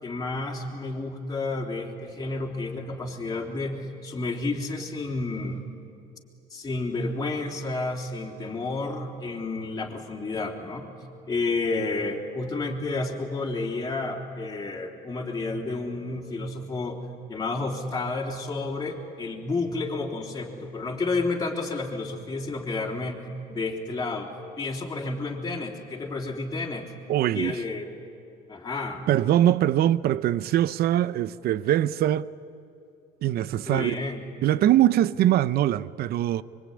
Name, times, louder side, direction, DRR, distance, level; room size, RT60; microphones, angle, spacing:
voice 1, 0.0-5.7 6.5-10.9 11.3-23.2 23.5-26.9 27.3-27.9 28.5-29.1 33.7-34.3, left 3 dB, 20° left, 3.7 m, -31 dB
voice 2, 27.1-27.6 29.1-32.3 33.2-34.0 34.4-36.4, right 12 dB, 60° right, 0.8 m, -22 dB
25.0 x 24.0 x 9.8 m
cardioid pair, 125°, 18 cm